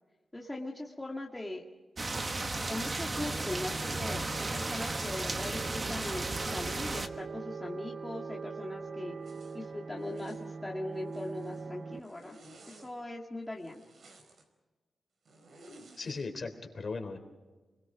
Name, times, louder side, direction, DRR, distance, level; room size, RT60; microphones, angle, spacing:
voice 1, 0.3-1.6 2.7-9.2 9.5-12.4 12.7-13.8, left 1 dB, 10° left, -2 dB, 1.9 m, -40 dB
sound 1, 2.0-7.1, right 2 dB, 30° right, 1.2 m, -34 dB
sound 2, 2.5-12.0, right 4 dB, 45° right, 0.7 m, -43 dB
Zipper (clothing), 9.2-9.6 10.0-10.5 10.9-11.7 12.0-12.9 13.6-14.4 15.3-16.2, right 2 dB, 60° right, 4.3 m, -55 dB
voice 2, 16.0-17.2, left 4 dB, 40° left, 5 dB, 3.6 m, -37 dB
29.5 x 22.0 x 5.1 m, 1.2 s
wide cardioid pair, 145°, 0 cm